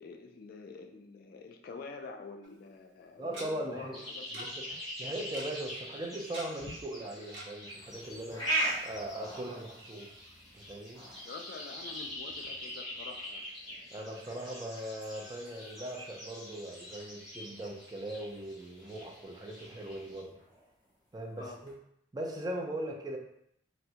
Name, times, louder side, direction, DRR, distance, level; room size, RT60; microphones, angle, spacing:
voice 1, 0.0-4.6 11.2-13.5 21.4-21.6, left 4 dB, 50° left, 4 dB, 0.3 m, -47 dB
Tick-tock, 2.4-2.5 3.3-3.5 4.3-4.5 4.7-4.8 5.1-5.5 6.3-6.7 7.3-7.5 7.9-8.0 8.3-8.4, right 1 dB, 85° right, 0.7 m, -44 dB
voice 2, 3.2-3.9 4.3-10.3 10.5-11.0 13.9-20.3 21.1-21.7 22.1-23.2, right 1 dB, 20° right, 0 dB, 0.4 m, -40 dB
sound 1, 3.9-20.2, left 1 dB, ahead, 0.9 m, -46 dB
sound 2, 7.7-21.8, right 1 dB, 25° left, 1.0 m, -42 dB
3.4 x 2.0 x 2.8 m, 0.74 s
head